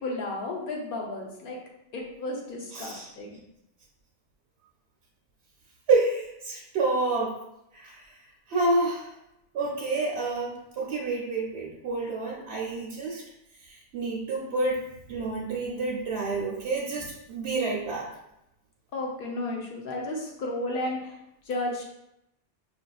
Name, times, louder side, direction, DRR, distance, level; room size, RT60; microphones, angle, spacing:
voice 1, 0.0-1.6 1.9-3.3 18.9-21.1 21.5-21.8, left 2 dB, 60° left, -1 dB, 0.9 m, -33 dB
voice 2, 2.7-3.1 5.9-7.4 7.7-8.0 8.5-9.1 9.5-13.2 13.6-14.8 15.1-18.1, right 3 dB, 75° right, -4 dB, 0.9 m, -28 dB
4.8 x 2.6 x 2.3 m, 0.83 s
omnidirectional pair, 1.1 m